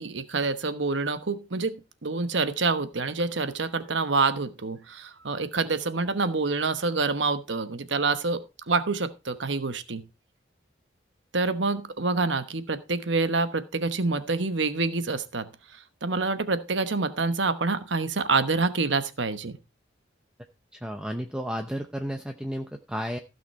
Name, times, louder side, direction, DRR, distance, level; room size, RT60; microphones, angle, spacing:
voice 1, 0.0-10.0 11.3-19.6, right 3 dB, 80° right, 11 dB, 1.1 m, -27 dB
voice 2, 20.8-23.2, equal, 5° right, 5 dB, 0.7 m, -32 dB
15.5 x 6.1 x 4.2 m, 0.28 s
head